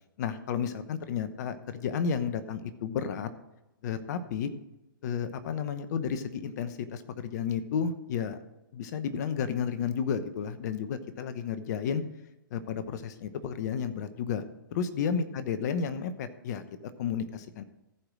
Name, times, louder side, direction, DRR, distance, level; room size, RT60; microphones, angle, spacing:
voice 1, 0.2-3.3 3.8-4.5 5.0-8.4 8.7-12.0 12.5-14.4 14.7-16.6 17.0-17.6, left 7 dB, 50° left, 11 dB, 1.0 m, -32 dB
14.5 x 5.0 x 6.2 m, 0.91 s
hypercardioid pair, 130°, 12 cm